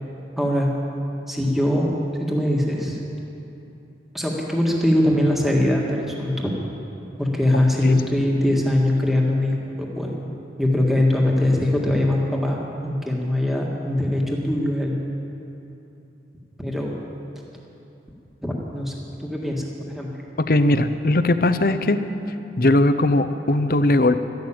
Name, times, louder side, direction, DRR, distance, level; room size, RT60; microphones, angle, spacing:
voice 1, 0.4-0.8 1.3-1.9 2.2-3.0 4.1-6.5 7.2-10.1 10.6-15.0 16.6-17.0 18.4-18.9 19.2-20.1, left 1 dB, ahead, -2 dB, 1.8 m, -22 dB
voice 2, 20.4-22.0 22.6-24.2, left 2 dB, 50° left, 10 dB, 0.7 m, -19 dB
13.0 x 12.0 x 8.8 m, 2.9 s
head